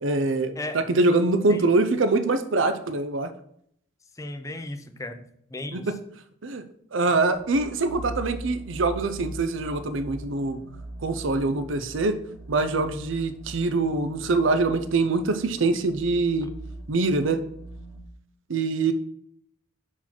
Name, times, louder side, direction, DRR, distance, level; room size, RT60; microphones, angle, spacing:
voice 1, 0.0-3.3 5.7-6.0 6.4-6.6 6.9-10.6 11.0-12.2 12.5-16.5 16.9-17.4 18.5-18.9, right 3 dB, 75° right, 10 dB, 0.6 m, -24 dB
voice 2, 4.2-5.2 5.5-5.9, left 1 dB, 15° left, 8 dB, 0.5 m, -35 dB
sound 1, 7.3-18.0, right 1 dB, ahead, 1.4 m, -41 dB
5.9 x 4.6 x 5.8 m, 0.69 s
head